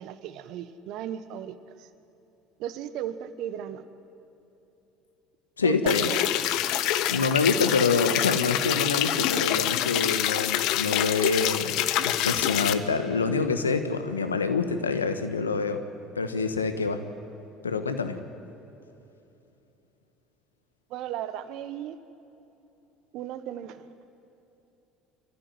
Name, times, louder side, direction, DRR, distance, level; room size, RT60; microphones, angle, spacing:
voice 1, 0.0-1.9 2.6-3.9 5.6-6.4 20.9-22.0 23.1-23.9, right 10 dB, 60° right, 12 dB, 1.2 m, -35 dB
voice 2, 5.6-6.0 7.1-15.8 16.1-17.0 17.6-18.2, left 4 dB, 90° left, 9 dB, 1.2 m, -26 dB
sound 1, 5.9-12.7, left 13 dB, 60° left, 0.9 m, -26 dB
25.5 x 14.0 x 9.3 m, 3.0 s
figure-of-eight pair, 65°, 0 cm